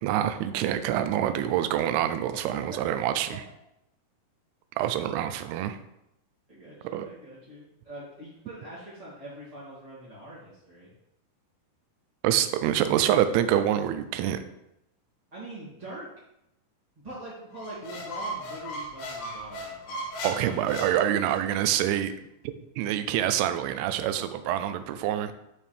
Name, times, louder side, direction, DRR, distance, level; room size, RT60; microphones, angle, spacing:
voice 1, 0.0-3.4 4.8-5.8 6.9-7.1 12.2-14.4 20.2-22.1 22.4-25.3, right 11 dB, 80° right, 10 dB, 2.5 m, -26 dB
voice 2, 1.1-1.6 2.4-2.9 6.5-10.9 15.3-16.1 17.0-20.8, right 1 dB, 15° right, -9 dB, 1.6 m, -44 dB
Squeak, 17.5-21.6, equal, 80° left, 3.6 m, -37 dB
11.5 x 4.6 x 3.5 m, 0.83 s
omnidirectional pair, 4.8 m